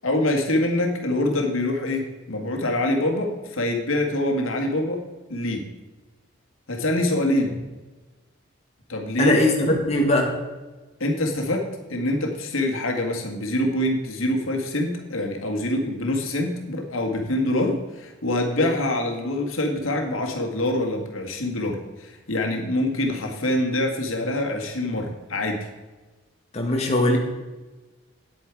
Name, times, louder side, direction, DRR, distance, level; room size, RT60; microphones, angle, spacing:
voice 1, 0.0-5.0 5.3-5.7 6.7-7.6 8.9-9.4 9.7-9.8 11.0-25.7, left 1 dB, 80° left, 2 dB, 1.8 m, -25 dB
voice 2, 9.2-10.3 18.6-18.7 26.5-27.2, left 1 dB, 30° left, 0 dB, 1.6 m, -21 dB
9.8 x 8.7 x 4.7 m, 1.2 s
head